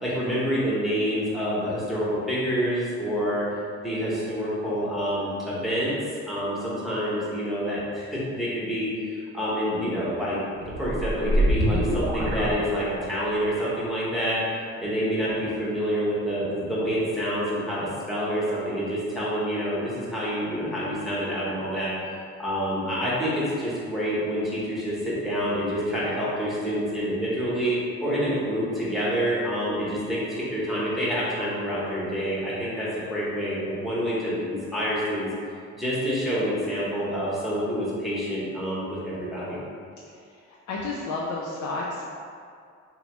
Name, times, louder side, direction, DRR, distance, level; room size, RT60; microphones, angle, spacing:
voice 1, 0.0-3.5 3.8-5.9 6.3-8.9 9.3-10.4 10.8-14.4 14.8-21.9 22.4-35.3 35.7-39.6, equal, ahead, -9 dB, 0.9 m, -27 dB
sound 1, 10.6-13.3, right 1 dB, 65° right, 0.5 m, -25 dB
voice 2, 40.1-42.0, left 3 dB, 70° left, -4 dB, 0.4 m, -32 dB
2.8 x 2.2 x 2.9 m, 2.2 s
cardioid pair, 90°, 30 cm